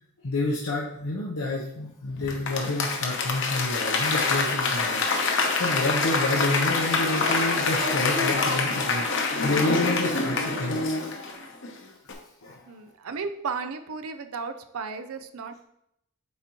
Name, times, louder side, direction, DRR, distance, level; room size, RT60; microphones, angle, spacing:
voice 1, 0.2-11.1 12.4-12.7, left 2 dB, 85° left, -4 dB, 0.9 m, -29 dB
Applause / Crowd, 2.3-11.7 12.1-12.2, left 3 dB, 55° left, 0.9 m, -26 dB
voice 2, 12.7-15.6, right 5 dB, 75° right, 9 dB, 0.5 m, -34 dB
8.3 x 4.1 x 3.0 m, 0.78 s
head